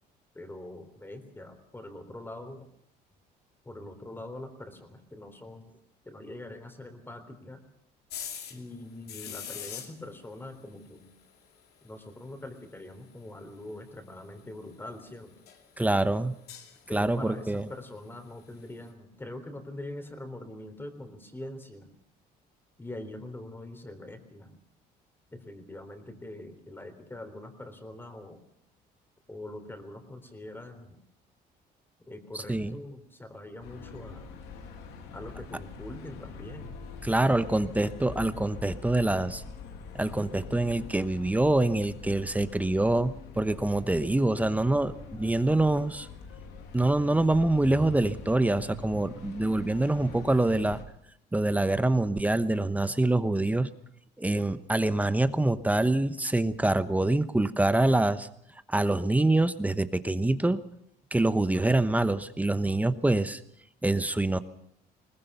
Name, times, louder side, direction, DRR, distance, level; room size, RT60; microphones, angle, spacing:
voice 1, 0.3-2.7 3.7-5.7 6.1-7.6 8.5-11.1 11.8-15.3 16.8-21.9 22.8-24.6 25.3-28.4 29.3-31.0 32.1-34.3 35.1-36.7, left 1 dB, 15° left, 8 dB, 3.6 m, -43 dB
sound 1, 8.1-8.7 9.1-10.3 10.7-10.8 11.0-11.1 11.4-11.5 13.2-13.3 14.1-14.2 14.9-15.1 15.5-15.7 16.2-17.1 18.7-18.8, left 8 dB, 70° left, 2.7 m, -41 dB
voice 2, 15.8-16.3 16.9-17.7 32.3-32.8 37.0-39.4 39.9-46.1 46.7-50.8 51.3-53.7 54.2-58.3 58.7-60.6 61.1-63.4 63.8-64.4, right 2 dB, 10° right, 13 dB, 1.0 m, -25 dB
sound 2, 33.6-50.8, left 5 dB, 90° left, 2.8 m, -44 dB
21.5 x 20.0 x 6.9 m, 0.71 s
cardioid pair, 110°, 17 cm